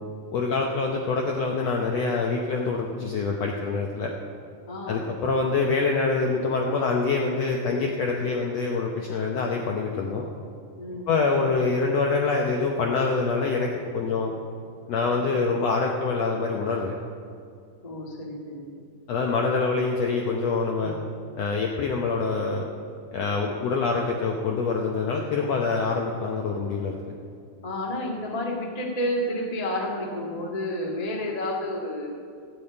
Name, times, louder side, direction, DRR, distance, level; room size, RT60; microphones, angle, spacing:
voice 1, 0.3-4.1 4.9-10.3 11.1-14.3 14.9-16.9 19.1-20.9 21.3-22.6 23.1-27.1, left 4 dB, 75° left, 1 dB, 1.5 m, -25 dB
voice 2, 4.7-5.2 10.8-11.1 17.8-18.7 20.8-21.1 27.6-32.1, left 1 dB, 45° left, -1 dB, 0.5 m, -30 dB
15.5 x 6.3 x 8.7 m, 2.3 s
omnidirectional pair, 4.1 m